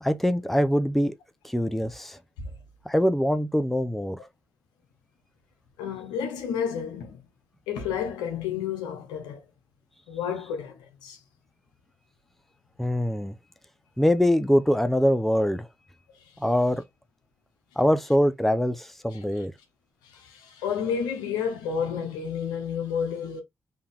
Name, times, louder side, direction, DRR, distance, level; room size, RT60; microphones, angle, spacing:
voice 1, 0.0-1.1 1.4-2.2 2.9-4.2 12.8-13.3 14.0-15.7 16.4-16.8 17.8-19.5, equal, 5° left, 0.7 m, -23 dB
voice 2, 5.8-7.2 7.7-9.4 10.1-11.2 19.1-19.4 20.0-23.4, left 7 dB, 85° left, 1.0 m, -31 dB
3.8 x 2.9 x 3.6 m
hypercardioid pair, 45°, 7 cm